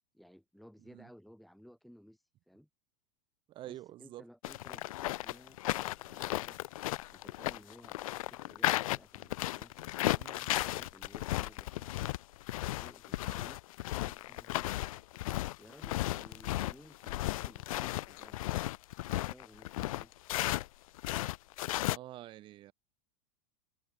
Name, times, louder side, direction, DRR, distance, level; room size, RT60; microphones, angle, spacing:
voice 1, 0.1-2.7 3.7-6.6 6.9-12.0 12.8-13.6 13.9-15.0 15.6-18.4 19.1-20.1, equal, ahead, 6.1 m, -58 dB
voice 2, 3.5-4.2 10.2-10.5 21.9-22.7, right 14 dB, 25° right, 5.1 m, -47 dB
sound 1, 4.4-20.7 21.0-22.0, left 16 dB, 65° left, 1.1 m, -35 dB
supercardioid pair, 180°, 19 cm